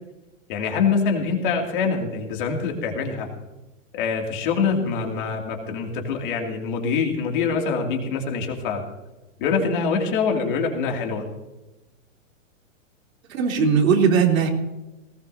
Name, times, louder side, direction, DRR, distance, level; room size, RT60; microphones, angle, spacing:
voice 1, 0.5-3.3 3.9-8.8 9.4-11.2, left 5 dB, 40° left, 2 dB, 2.6 m, -24 dB
voice 2, 13.3-14.5, right 6 dB, 85° right, 1 dB, 3.5 m, -18 dB
19.0 x 18.5 x 2.8 m, 1.0 s
supercardioid pair, 170°, 39 cm